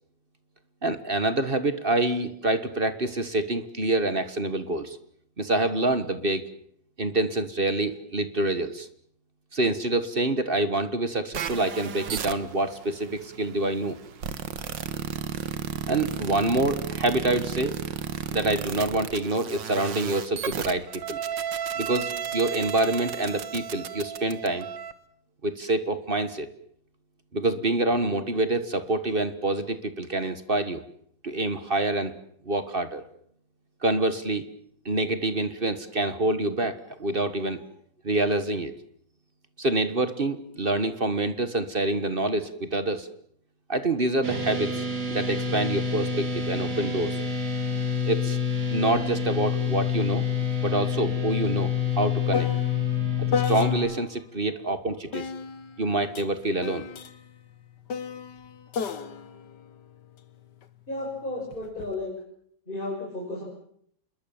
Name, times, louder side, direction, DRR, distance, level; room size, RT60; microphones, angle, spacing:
voice 1, 0.8-5.0 5.4-6.4 7.0-8.9 9.5-14.0 15.9-17.7 18.3-21.2 21.7-24.7 25.4-26.5 27.3-30.8 31.2-32.1 32.4-33.0 33.8-34.4 34.8-37.6 38.0-38.7 39.6-43.1 43.7-47.2 48.0-48.4 48.7-50.3 50.6-52.5 53.2-55.3 55.8-56.8, right 2 dB, 35° right, 11 dB, 1.5 m, -26 dB
sound 1, 11.3-24.9, right 8 dB, 80° right, 2.0 m, -34 dB
sound 2, 44.2-53.7, left 6 dB, 60° right, 3.9 m, -27 dB
sound 3, 49.0-49.1 49.4-54.2 55.1-60.7 61.5-61.9, left 6 dB, 70° left, 1.9 m, -35 dB
voice 2, 60.9-62.1 62.7-63.4, left 2 dB, 25° left, -1 dB, 5.8 m, -33 dB
27.5 x 21.5 x 7.2 m, 0.68 s
omnidirectional pair, 2.0 m